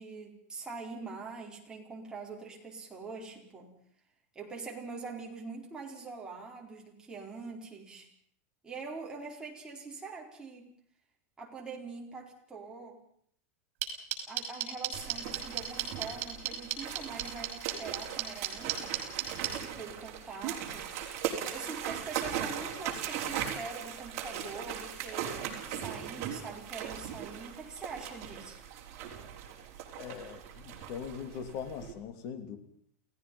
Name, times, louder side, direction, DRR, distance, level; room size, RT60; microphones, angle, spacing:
voice 1, 0.0-3.7 4.3-8.1 8.6-10.7 11.4-13.0 14.3-19.1 19.5-21.0 21.5-28.6, right 4 dB, 10° right, -1 dB, 4.6 m, -44 dB
sound 1, 13.8-19.5, right 17 dB, 60° right, 5.9 m, -32 dB
sound 2, 14.9-31.9, right 9 dB, 45° right, 4.9 m, -39 dB
voice 2, 30.0-32.6, left 7 dB, 45° left, 8 dB, 3.2 m, -41 dB
29.5 x 17.5 x 5.6 m, 0.62 s
supercardioid pair, 155°, 8 cm